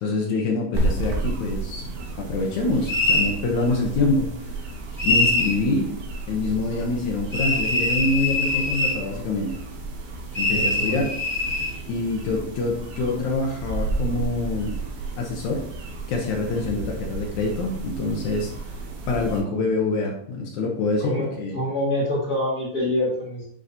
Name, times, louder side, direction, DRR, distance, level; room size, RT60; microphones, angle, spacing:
voice 1, 0.0-1.9 2.2-4.3 5.0-5.9 6.3-9.5 10.4-11.1 11.9-14.7 15.2-15.6 16.1-18.5 19.1-21.6, left 3 dB, 75° left, -1 dB, 1.8 m, -25 dB
sound 1, 0.7-19.4, right 2 dB, 70° right, 2.9 m, -32 dB
sound 2, 2.9-3.3 5.0-5.6 7.3-9.0 10.3-11.7, left 2 dB, 25° left, 0.7 m, -23 dB
voice 2, 10.5-11.1 21.0-23.4, left 1 dB, 50° left, -7 dB, 1.1 m, -26 dB
10.0 x 4.0 x 2.8 m, 0.64 s
omnidirectional pair, 4.5 m